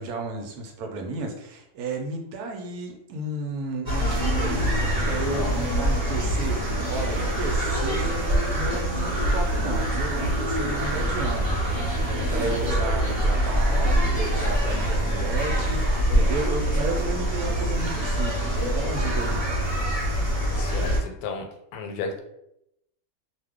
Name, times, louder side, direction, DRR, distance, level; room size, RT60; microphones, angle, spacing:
voice 1, 0.0-4.7 5.1-19.5, right 3 dB, 85° right, 2 dB, 1.1 m, -33 dB
sound 1, 3.9-21.0, equal, 35° right, 1.0 m, -24 dB
voice 2, 20.6-21.5 21.7-22.2, left 4 dB, 85° left, 3 dB, 1.1 m, -33 dB
2.7 x 2.1 x 3.5 m, 0.80 s
omnidirectional pair, 1.6 m